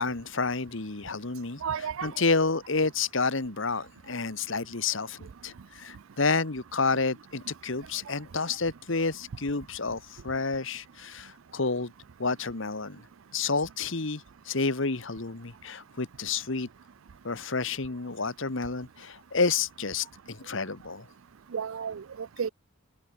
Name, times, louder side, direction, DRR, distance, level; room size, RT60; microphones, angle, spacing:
voice 1, 0.0-1.6 2.0-11.9 12.2-13.0 13.3-16.7 17.2-21.1, left 4 dB, 60° left, 1.4 m, -30 dB
voice 2, 1.6-2.1 21.5-22.5, right 7 dB, 70° right, 0.5 m, -32 dB
head